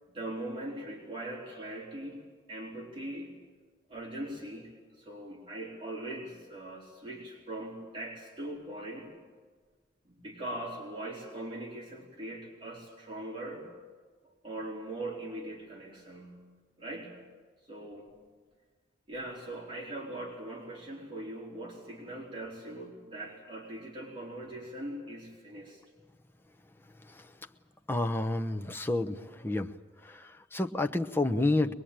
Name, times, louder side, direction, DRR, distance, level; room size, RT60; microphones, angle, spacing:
voice 1, 0.1-2.2 2.5-3.3 3.9-4.7 5.0-9.1 10.0-13.7 14.4-16.4 16.8-17.1 17.7-18.1 19.1-25.8, right 1 dB, 30° right, -3 dB, 4.4 m, -41 dB
voice 2, 27.9-29.7 30.0-31.7, left 2 dB, 15° left, 5 dB, 0.8 m, -30 dB
23.0 x 22.0 x 8.9 m, 1.5 s
head